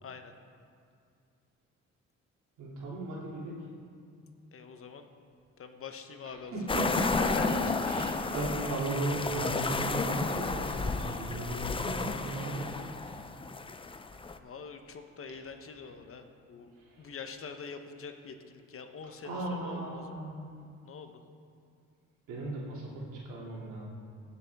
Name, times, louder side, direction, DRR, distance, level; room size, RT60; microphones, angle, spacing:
voice 1, 0.0-0.3 4.5-5.1 5.6-7.7 8.0-8.1 14.4-16.7 17.0-20.2 20.8-21.2, left 6 dB, 45° left, 7 dB, 0.9 m, -44 dB
voice 2, 2.6-3.6 6.5-7.2 7.9-12.7 16.9-17.1 19.2-20.5 22.3-23.8, right 2 dB, 90° right, -5 dB, 2.7 m, -36 dB
sound 1, 6.7-14.4, left 3 dB, 20° left, 0.5 m, -32 dB
16.5 x 7.0 x 3.5 m, 2.4 s
cardioid pair, 90°, 30 cm